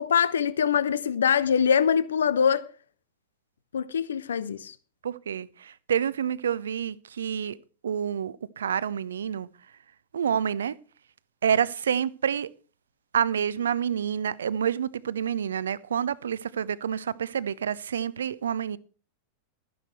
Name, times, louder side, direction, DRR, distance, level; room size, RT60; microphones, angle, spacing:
voice 1, 0.0-2.6 3.7-4.7, left 7 dB, 65° left, 0.7 m, -23 dB
voice 2, 5.0-7.6 7.8-9.5 10.1-10.8 11.4-12.5 13.1-18.8, right 8 dB, 65° right, 0.6 m, -28 dB
13.5 x 10.5 x 4.5 m
figure-of-eight pair, 90°, 0 cm